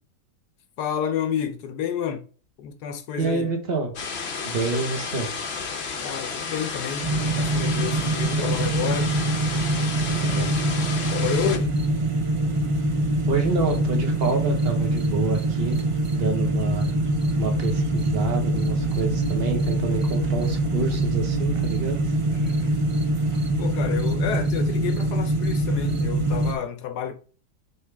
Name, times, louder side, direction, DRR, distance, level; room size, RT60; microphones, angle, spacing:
voice 1, 0.8-2.2 2.6-3.5 6.0-7.1 7.3-9.1 11.1-11.7 22.3-22.7 23.6-27.2, left 8 dB, 70° left, 1.3 m, -30 dB
voice 2, 3.2-3.9 4.4-5.3 10.1-10.5 13.3-15.8 16.1-16.9 17.4-22.0, right 3 dB, 35° right, 1.5 m, -28 dB
sound 1, 4.0-11.6, left 5 dB, 50° left, 0.9 m, -32 dB
sound 2, 7.0-26.5, right 2 dB, 55° right, 0.3 m, -24 dB
5.5 x 5.1 x 3.4 m
omnidirectional pair, 1.8 m